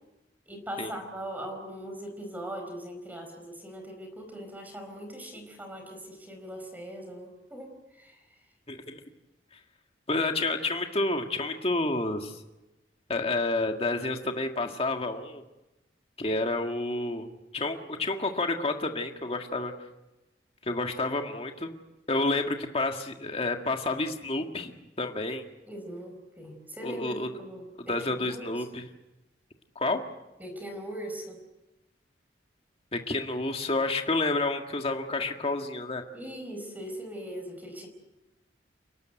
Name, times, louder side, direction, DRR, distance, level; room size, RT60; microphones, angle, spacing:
voice 1, 0.5-8.2 25.7-28.5 30.4-31.4 36.1-37.9, right 1 dB, 10° right, 4 dB, 4.6 m, -40 dB
voice 2, 8.7-9.0 10.1-12.4 13.1-15.4 16.2-17.3 17.5-19.7 20.6-21.7 22.1-24.7 25.0-25.4 26.8-27.3 27.7-28.9 29.8-30.0 32.9-36.0, left 2 dB, 35° left, 4 dB, 1.9 m, -29 dB
29.5 x 12.5 x 9.3 m, 0.99 s
head